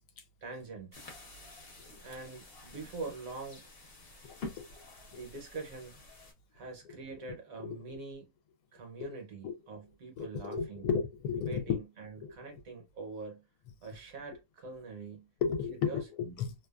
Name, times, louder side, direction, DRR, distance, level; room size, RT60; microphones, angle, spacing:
voice 1, 0.4-1.0 2.0-3.6 5.1-6.0 6.5-8.3 8.7-10.8 11.3-13.4 13.8-15.3 15.8-16.4, right 3 dB, 70° right, 1.1 m, -44 dB
sound 1, 0.9-6.3, left 3 dB, 45° left, 0.9 m, -49 dB
voice 2, 4.2-4.7 7.6-7.8 9.1-9.5 10.2-11.8 12.2-12.3 15.4-16.5, left 7 dB, 75° left, 1.0 m, -34 dB
2.7 x 2.3 x 2.2 m
omnidirectional pair, 1.6 m